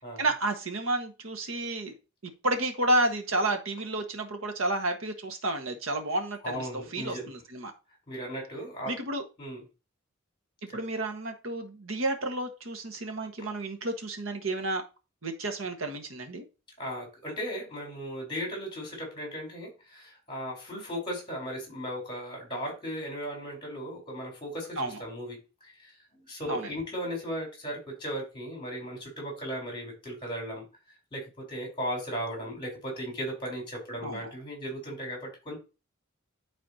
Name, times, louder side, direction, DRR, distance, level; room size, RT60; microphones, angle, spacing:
voice 1, 0.2-1.9 2.2-7.7 8.9-9.2 10.7-14.8 15.2-16.4 24.8-25.0 26.5-26.7 34.0-34.2, right 2 dB, 80° right, 5 dB, 1.5 m, -31 dB
voice 2, 6.4-7.3 8.1-8.9 9.4-9.6 10.7-10.8 13.4-13.5 16.8-35.6, equal, 25° left, 0 dB, 4.0 m, -37 dB
12.0 x 4.2 x 2.8 m, 0.30 s
head